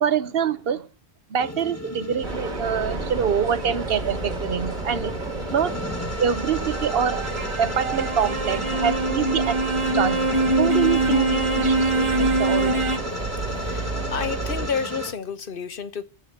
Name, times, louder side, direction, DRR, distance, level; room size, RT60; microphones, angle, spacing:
voice 1, 0.0-0.9 1.3-5.1 5.5-5.7 6.2-7.2 7.6-10.3 10.6-12.8, right 7 dB, 65° right, 1.0 m, -25 dB
sound 1, 1.4-15.1, left 1 dB, 15° left, 1.1 m, -34 dB
sound 2, 2.2-14.7, right 3 dB, 45° right, 1.8 m, -32 dB
sound 3, 6.4-13.0, right 2 dB, 30° right, 1.1 m, -23 dB
voice 2, 14.1-16.0, left 6 dB, 55° left, 1.1 m, -30 dB
8.3 x 7.9 x 7.6 m
omnidirectional pair, 1.1 m